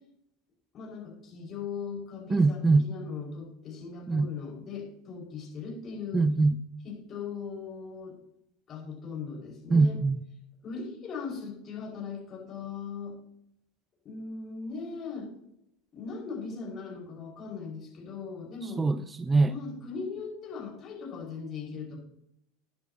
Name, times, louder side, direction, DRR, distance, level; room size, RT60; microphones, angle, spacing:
voice 1, 0.7-6.2 6.8-8.2 8.7-10.0 10.6-13.1 14.0-15.3 15.9-18.9 19.4-22.0, left 5 dB, 35° left, -2 dB, 5.4 m, -39 dB
voice 2, 2.3-2.9 4.1-4.3 6.1-6.6 9.7-10.2 18.8-19.5, right 3 dB, 15° right, 12 dB, 0.4 m, -23 dB
19.0 x 8.0 x 2.9 m, 0.77 s
figure-of-eight pair, 80°, 0 cm